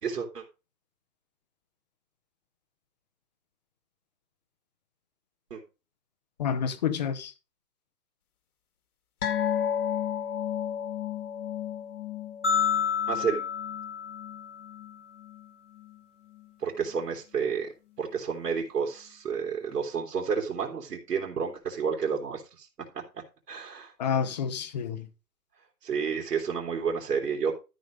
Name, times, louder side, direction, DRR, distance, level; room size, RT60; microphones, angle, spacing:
voice 1, 0.0-0.4 5.5-5.6 13.1-13.4 16.6-17.7 18.0-22.7 23.5-24.2 25.8-27.6, right 6 dB, 70° right, 3.2 m, -30 dB
voice 2, 6.4-7.3 24.0-25.1, left 7 dB, 25° left, 0.9 m, -29 dB
sound 1, 9.2-16.0 16.3-16.5 16.9-17.0, left 9 dB, 60° left, 2.0 m, -34 dB
sound 2, 12.4-14.8, left 7 dB, 10° left, 0.6 m, -29 dB
13.0 x 5.1 x 5.1 m
hypercardioid pair, 160°, 49 cm